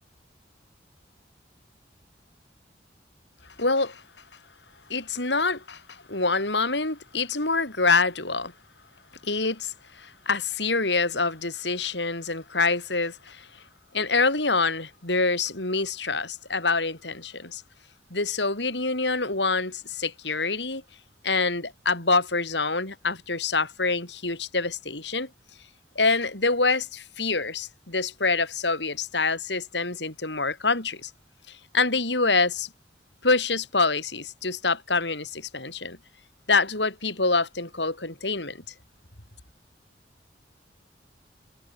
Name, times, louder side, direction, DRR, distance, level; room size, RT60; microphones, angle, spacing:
voice 1, 3.6-4.0 4.9-8.5 9.2-13.6 13.9-17.6 18.1-20.8 21.2-25.3 26.0-31.1 31.5-32.7 33.2-36.0 36.5-38.6, left 3 dB, 80° left, 7.8 m, -26 dB
head